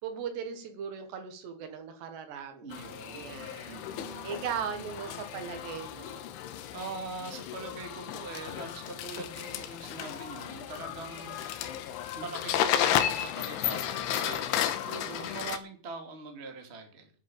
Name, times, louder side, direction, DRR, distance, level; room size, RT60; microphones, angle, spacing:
voice 1, 0.0-2.7 3.1-3.8 4.2-6.3 14.9-15.4, right 7 dB, 70° right, 8 dB, 3.5 m, -38 dB
voice 2, 2.6-5.3 6.7-11.4 12.1-14.5 15.2-17.1, right 3 dB, 20° right, 4 dB, 1.9 m, -43 dB
sound 1, 2.7-15.6, left 10 dB, 80° left, 3.5 m, -33 dB
9.8 x 8.2 x 8.8 m, 0.42 s
omnidirectional pair, 5.5 m